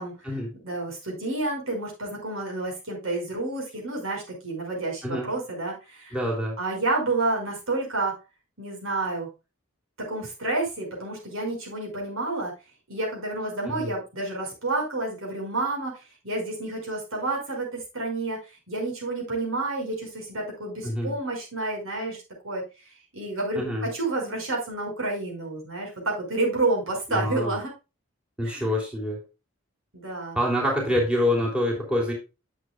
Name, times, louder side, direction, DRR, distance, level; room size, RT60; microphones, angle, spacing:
voice 1, 0.6-6.2 6.6-8.2 8.6-9.3 10.0-12.5 12.9-27.7 28.4-28.6 29.9-30.4, right 2 dB, 75° right, -1 dB, 5.3 m, -30 dB
voice 2, 6.1-6.6 13.7-13.9 20.8-21.1 23.5-23.9 27.1-27.6 28.4-29.2 30.3-32.1, left 1 dB, 5° right, -2 dB, 3.1 m, -26 dB
11.5 x 7.6 x 2.3 m, 0.28 s
head